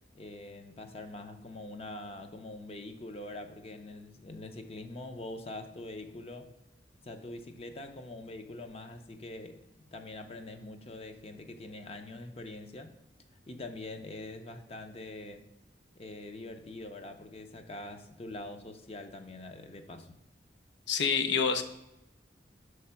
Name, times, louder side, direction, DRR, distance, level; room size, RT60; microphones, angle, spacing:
voice 1, 0.1-6.5 7.0-12.9 13.5-15.4 16.0-20.2, left 2 dB, 35° left, 6 dB, 0.5 m, -44 dB
voice 2, 20.9-21.6, left 6 dB, 85° left, 8 dB, 0.6 m, -27 dB
5.8 x 3.2 x 5.6 m, 0.90 s
head